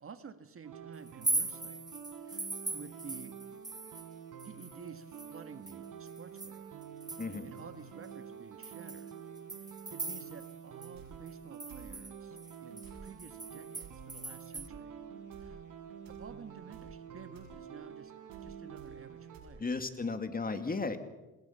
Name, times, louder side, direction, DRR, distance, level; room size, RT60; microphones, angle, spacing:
voice 1, 0.0-1.9 2.2-3.4 4.4-6.7 7.4-9.1 9.5-14.9 15.4-15.6 16.1-18.1 18.4-19.7 20.5-20.6, right 6 dB, 40° right, 10 dB, 1.7 m, -51 dB
sound 1, 0.6-19.4, right 8 dB, 65° right, 4.9 m, -48 dB
sound 2, 1.1-4.1 4.4-7.6 8.0-8.1 8.6-10.6 10.8-10.9 11.3-14.7, right 2 dB, 10° right, 0.8 m, -40 dB
voice 2, 7.2-7.5 19.6-21.0, left 4 dB, 25° left, 8 dB, 2.4 m, -34 dB
sound 3, 10.9-11.1 11.7-11.9 12.8-13.0 13.8-13.9 14.5-14.7 15.3-15.5 16.0-16.3 16.7-16.9 17.3-17.5 18.3-18.5 18.8-18.9 19.3-19.5, right 7 dB, 90° right, 7.1 m, -53 dB
27.5 x 20.5 x 5.8 m, 1.0 s
supercardioid pair, 80°, 34 cm